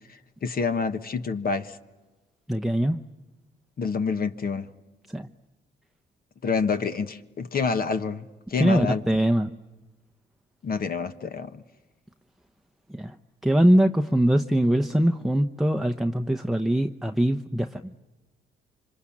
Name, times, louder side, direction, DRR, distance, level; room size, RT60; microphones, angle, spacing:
voice 1, 0.4-1.8 3.8-4.7 6.4-9.0 10.6-11.6, left 5 dB, 50° left, 1.4 m, -27 dB
voice 2, 2.5-3.0 5.1-5.3 8.6-9.5 12.9-13.2 13.4-17.9, right 1 dB, ahead, 0.9 m, -22 dB
27.0 x 25.5 x 8.7 m
cardioid pair, 90°, 20 cm